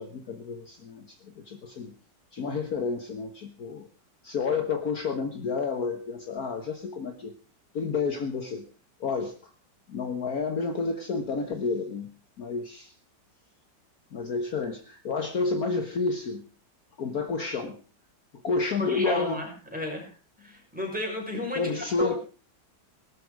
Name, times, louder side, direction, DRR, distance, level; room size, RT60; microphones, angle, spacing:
voice 1, 0.0-1.9 2.3-3.9 4.2-7.3 7.7-8.6 9.0-9.3 9.9-12.1 12.4-12.9 14.1-16.4 17.0-17.8 18.4-19.5 21.5-22.2, left 4 dB, 55° left, 7 dB, 1.7 m, -30 dB
voice 2, 18.8-20.1 20.4-22.2, left 1 dB, 5° right, 0 dB, 6.1 m, -33 dB
18.5 x 13.0 x 4.8 m, 0.36 s
omnidirectional pair, 2.0 m